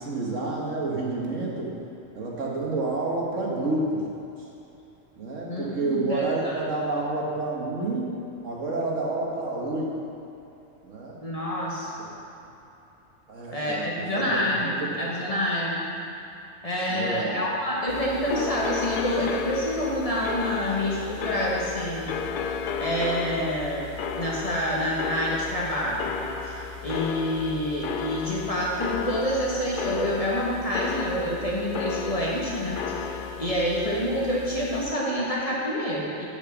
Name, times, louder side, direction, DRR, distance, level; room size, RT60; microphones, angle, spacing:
voice 1, 0.0-1.7 2.1-4.0 5.2-8.2 8.4-10.0 10.8-11.2 12.0-12.1 13.3-14.9 16.9-17.4, right 2 dB, 70° right, -3 dB, 1.7 m, -29 dB
voice 2, 5.5-6.6 11.2-11.9 13.5-15.8 16.6-22.2 22.4-23.9 24.1-36.3, equal, 25° left, -6 dB, 1.5 m, -27 dB
sound 1, 17.9-34.9, left 5 dB, 70° left, 0.5 m, -33 dB
8.7 x 5.4 x 7.0 m, 2.8 s
omnidirectional pair, 1.4 m